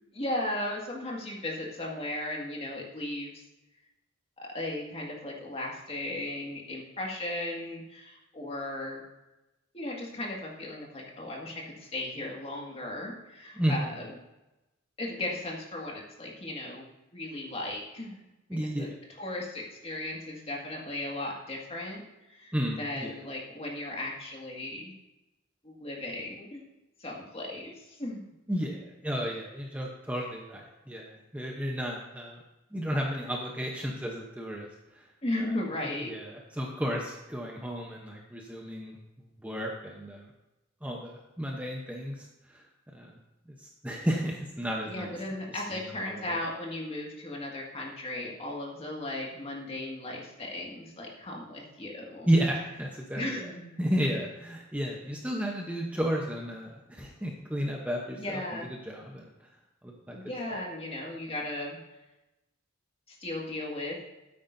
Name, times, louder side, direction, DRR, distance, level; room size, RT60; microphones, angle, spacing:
voice 1, 0.1-3.4 4.5-9.0 9.7-14.1 15.0-16.9 17.1-18.3 18.6-18.9 19.2-22.0 22.3-24.9 25.6-26.6 27.0-28.2 35.2-36.1 44.9-52.3 53.1-53.7 58.2-58.7 60.1-61.8 63.1-64.0, left 1 dB, 30° left, -2 dB, 2.0 m, -36 dB
voice 2, 13.6-13.9 18.5-19.0 22.5-23.1 28.5-32.4 32.7-34.7 34.9-35.1 36.0-40.3 40.8-42.6 42.9-43.1 43.6-45.1 45.7-46.4 52.3-53.4 53.8-58.4 58.8-59.3 59.8-60.2 60.5-60.6, equal, 5° right, -1 dB, 0.8 m, -32 dB
13.0 x 9.1 x 2.7 m, 0.99 s
head